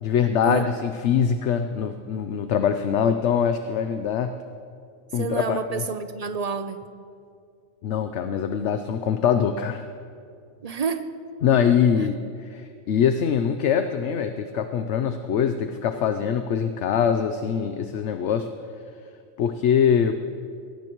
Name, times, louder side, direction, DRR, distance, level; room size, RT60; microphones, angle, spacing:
voice 1, 0.0-4.3 5.1-5.8 7.8-9.8 11.4-12.2 12.4-18.5 19.4-20.2, left 7 dB, 65° left, 8 dB, 0.9 m, -23 dB
voice 2, 5.1-6.8 10.6-11.1, right 6 dB, 45° right, 9 dB, 0.5 m, -29 dB
21.5 x 17.5 x 3.0 m, 2.3 s
omnidirectional pair, 1.4 m